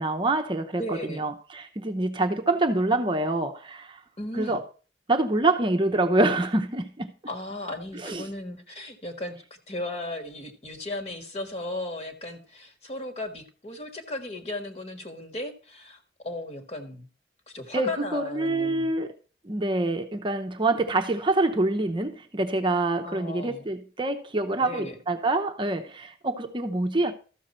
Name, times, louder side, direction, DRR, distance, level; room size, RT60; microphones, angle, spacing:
voice 1, 0.0-4.0 4.3-4.6 5.1-7.1 7.9-8.3 17.7-19.1 19.4-27.1, right 2 dB, 30° right, 0.7 m, -26 dB
voice 2, 0.8-1.3 4.2-4.6 7.3-17.1 17.5-18.9 23.0-23.7 24.6-25.0, left 1 dB, 35° left, 1.6 m, -36 dB
13.5 x 6.5 x 4.3 m
head